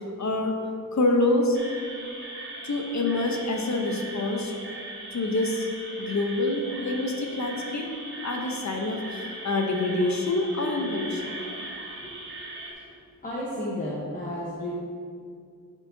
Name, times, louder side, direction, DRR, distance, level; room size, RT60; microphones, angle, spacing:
voice 1, 0.2-0.5 0.9-1.6 2.6-4.5 5.1-5.7 6.0-7.9 8.2-11.3, left 2 dB, 50° left, 2 dB, 0.9 m, -26 dB
sound 1, 1.5-12.7, right 2 dB, 35° right, 1.2 m, -39 dB
voice 2, 13.2-14.7, left 1 dB, 25° left, -7 dB, 1.1 m, -33 dB
10.5 x 4.5 x 2.8 m, 2.3 s
wide cardioid pair, 90°, 35 cm